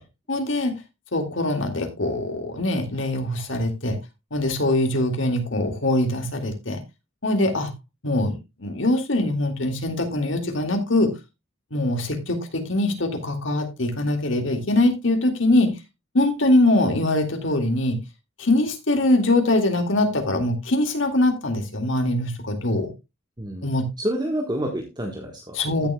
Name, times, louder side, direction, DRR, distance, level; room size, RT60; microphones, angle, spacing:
voice 1, 0.3-0.8 1.1-4.0 4.3-6.8 7.2-7.7 8.0-11.1 11.7-15.8 16.1-18.0 18.4-22.9 23.6-23.9 25.5-25.9, left 1 dB, 70° left, 6 dB, 2.2 m, -22 dB
voice 2, 24.0-25.6, right 1 dB, 20° right, 2 dB, 1.4 m, -28 dB
15.5 x 7.1 x 2.3 m, 0.24 s
head